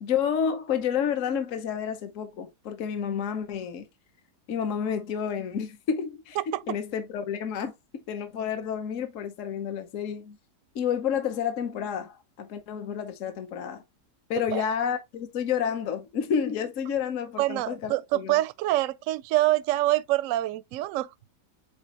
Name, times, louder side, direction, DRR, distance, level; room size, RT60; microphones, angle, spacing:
voice 1, 0.0-3.8 4.5-7.7 8.1-10.4 10.7-13.8 14.3-18.4, left 7 dB, 55° left, 1.2 m, -30 dB
voice 2, 6.4-6.8 14.5-14.6 17.4-21.1, right 16 dB, 70° right, 0.8 m, -26 dB
8.3 x 4.0 x 2.9 m
omnidirectional pair, 1.8 m